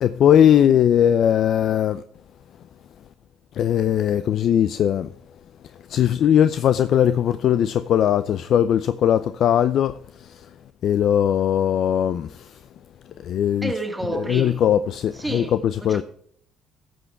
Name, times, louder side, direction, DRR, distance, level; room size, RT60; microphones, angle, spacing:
voice 1, 0.0-2.0 3.5-5.1 5.9-10.5 10.8-12.6 13.2-13.7 14.1-16.0, left 10 dB, 65° left, 0.4 m, -19 dB
voice 2, 13.6-14.6 15.1-15.6 15.8-16.0, right 2 dB, 10° right, 1.9 m, -29 dB
15.5 x 6.3 x 4.5 m
supercardioid pair, 85°, 0 cm